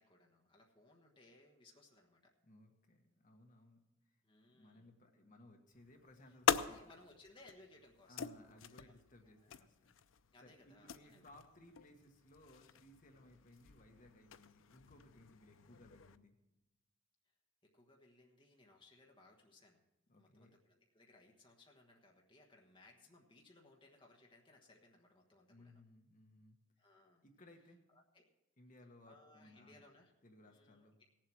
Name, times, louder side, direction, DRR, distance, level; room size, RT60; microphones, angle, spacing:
voice 1, 0.0-2.3 4.2-4.9 6.3-9.0 9.2-9.6 10.3-11.2 17.6-19.8 20.2-25.8 26.8-27.2 27.9-28.2 29.1-30.1 30.4-31.0, left 2 dB, 25° left, 0 dB, 1.3 m, -64 dB
voice 2, 2.4-3.8 4.5-6.9 8.1-9.9 10.4-16.3 20.1-20.5 25.5-26.6 27.2-27.8 28.6-29.8 30.2-30.9, left 1 dB, 40° left, 3 dB, 1.4 m, -62 dB
sound 1, 5.7-16.2, left 7 dB, 85° left, 0.5 m, -43 dB
17.5 x 7.5 x 6.2 m, 0.95 s
head